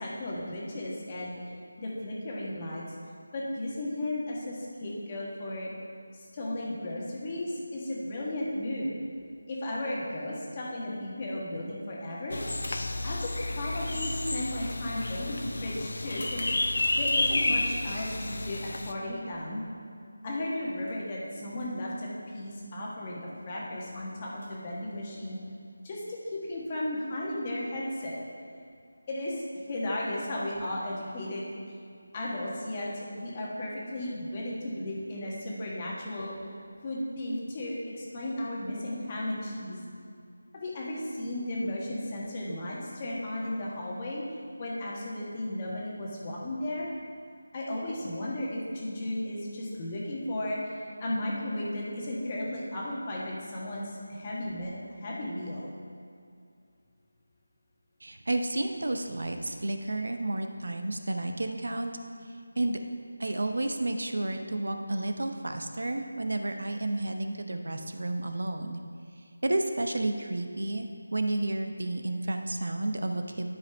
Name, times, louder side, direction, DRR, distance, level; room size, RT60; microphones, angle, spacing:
voice 1, 0.0-1.4 1.8-2.8 3.3-5.7 6.1-9.0 9.5-12.4 13.0-13.3 13.5-16.4 17.0-19.6 20.2-25.4 25.8-28.2 29.1-29.4 29.7-31.5 32.1-36.3 36.8-39.8 40.5-44.2 44.6-46.9 47.5-54.7 55.0-55.6, left 1 dB, 25° left, -4 dB, 1.4 m, -35 dB
sound 1, 12.3-18.9, left 2 dB, 65° left, 0.6 m, -31 dB
sound 2, 12.5-17.5 17.8-19.1 20.3-22.1 23.2-23.5 24.2-25.4, left 1 dB, 90° left, 1.6 m, -51 dB
voice 2, 58.0-61.9 62.6-62.8 63.2-68.8 69.4-73.5, right 2 dB, 75° right, 6 dB, 0.7 m, -31 dB
12.5 x 5.2 x 3.5 m, 2.4 s
figure-of-eight pair, 170°, 0 cm